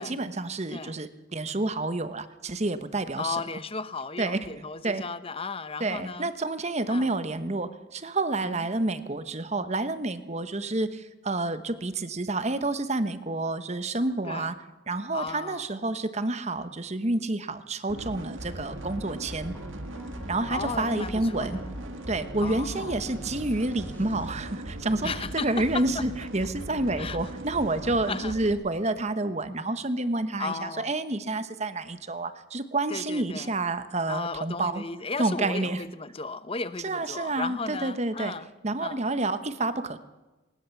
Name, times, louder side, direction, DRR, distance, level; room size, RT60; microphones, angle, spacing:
voice 1, 0.0-3.4 4.2-4.4 4.8-5.0 5.8-14.5 14.9-19.5 20.3-21.6 22.1-34.8 35.2-35.8 36.8-38.3 38.6-40.0, right 2 dB, 30° right, 11 dB, 1.1 m, -29 dB
voice 2, 3.2-6.3 6.9-7.1 8.5-8.7 14.2-14.5 15.1-15.7 20.5-21.6 22.4-23.0 25.0-26.1 27.0-27.2 28.1-28.4 30.4-30.9 32.9-33.5 34.1-38.5 38.8-39.1, left 4 dB, 25° left, 14 dB, 0.8 m, -35 dB
sound 1, 17.9-28.5, right 1 dB, 65° right, 1.9 m, -39 dB
sound 2, 18.6-24.3, equal, 10° left, 1.8 m, -47 dB
19.5 x 19.5 x 7.2 m, 1.1 s
head